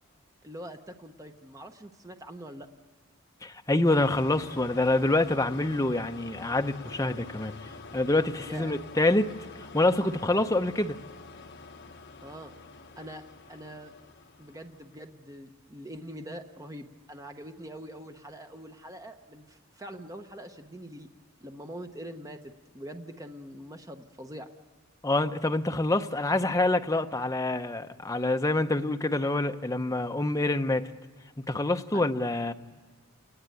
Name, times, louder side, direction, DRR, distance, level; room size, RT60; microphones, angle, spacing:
voice 1, 0.4-2.7 8.4-8.7 12.2-12.5 13.0-13.2 13.5-13.9 14.4-21.1 21.4-22.4 22.7-24.5 31.9-32.1, right 1 dB, 15° right, 0.9 m, -43 dB
voice 2, 3.4-7.5 7.9-9.3 9.7-11.0 25.0-30.9 31.5-32.5, left 2 dB, 15° left, 0.7 m, -26 dB
sound 1, 3.8-15.1, left 4 dB, 50° left, 1.1 m, -47 dB
29.0 x 19.5 x 9.2 m
head